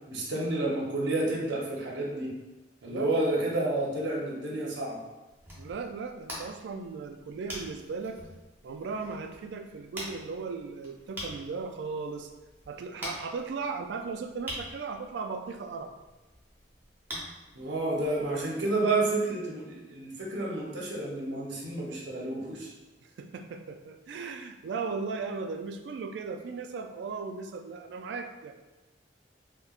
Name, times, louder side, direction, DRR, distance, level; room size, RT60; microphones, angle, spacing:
voice 1, 0.1-2.3 2.8-5.0 17.5-22.7, right 2 dB, 90° right, -3 dB, 0.8 m, -30 dB
voice 2, 2.9-3.3 5.6-8.2 8.6-12.3 12.7-15.9 23.2-28.5, right 4 dB, 75° right, 6 dB, 0.3 m, -37 dB
sound 1, 5.3-18.5, equal, 10° right, 0.8 m, -45 dB
4.2 x 2.2 x 2.4 m, 1.1 s
head